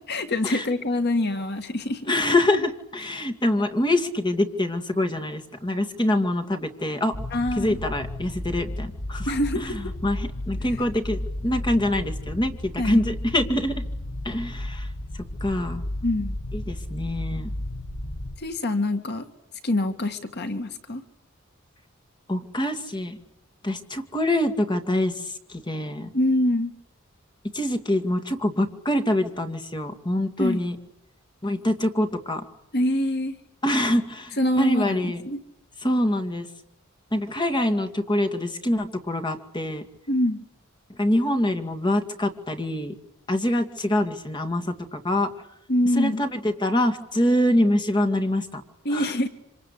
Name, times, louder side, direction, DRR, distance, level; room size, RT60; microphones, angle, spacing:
voice 1, 0.0-2.1 7.3-7.8 9.2-9.9 12.8-13.0 16.0-16.4 18.4-19.3 19.6-21.0 26.1-26.8 30.4-30.6 32.7-33.4 34.4-35.4 40.1-40.4 45.7-46.2 48.8-49.3, left 1 dB, 55° left, 7 dB, 1.8 m, -25 dB
voice 2, 2.1-7.1 7.6-13.8 14.2-14.9 15.4-15.8 16.5-17.5 22.3-23.2 23.6-26.1 27.5-30.8 31.4-32.4 33.6-35.2 35.8-36.5 37.1-39.9 41.0-42.9 43.3-45.3 46.0-48.6 48.9-49.1, left 1 dB, 20° left, 6 dB, 2.3 m, -25 dB
sound 1, 7.1-18.4, left 1 dB, 85° left, 2.1 m, -33 dB
27.0 x 25.5 x 8.4 m, 0.80 s
head